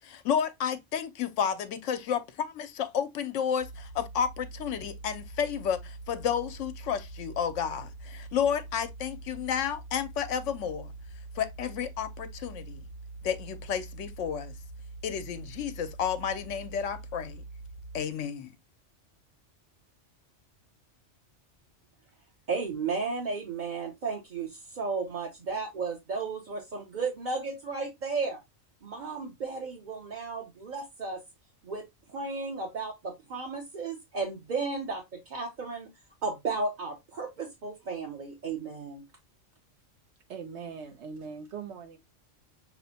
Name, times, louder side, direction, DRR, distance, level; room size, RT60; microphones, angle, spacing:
voice 1, 0.0-10.9 11.4-12.8 13.2-14.5 15.0-17.4 17.9-18.5, left 8 dB, 80° left, 0.9 m, -31 dB
sound 1, 3.6-18.0, right 3 dB, 85° right, 2.1 m, -44 dB
voice 2, 22.5-28.4 28.8-31.2 31.6-35.9 36.2-39.0, right 4 dB, 45° right, 0.8 m, -34 dB
voice 3, 40.3-42.0, right 6 dB, 70° right, 0.9 m, -41 dB
6.0 x 2.1 x 2.7 m
omnidirectional pair, 1.3 m